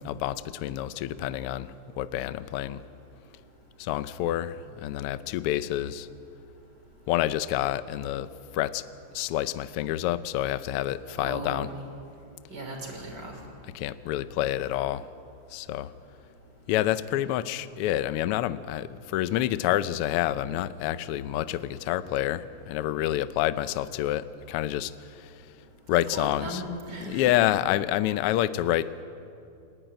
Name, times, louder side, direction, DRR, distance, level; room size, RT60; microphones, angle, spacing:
voice 1, 0.0-2.8 3.8-6.1 7.1-8.3 8.5-8.8 9.1-11.7 13.7-15.1 15.5-15.9 16.7-25.4 25.9-26.6 27.1-29.0, left 13 dB, 85° left, 14 dB, 1.2 m, -28 dB
voice 2, 11.2-11.7 12.5-13.3 26.1-27.3, right 1 dB, 35° right, 2 dB, 3.7 m, -37 dB
29.5 x 11.0 x 9.2 m, 2.6 s
omnidirectional pair, 3.3 m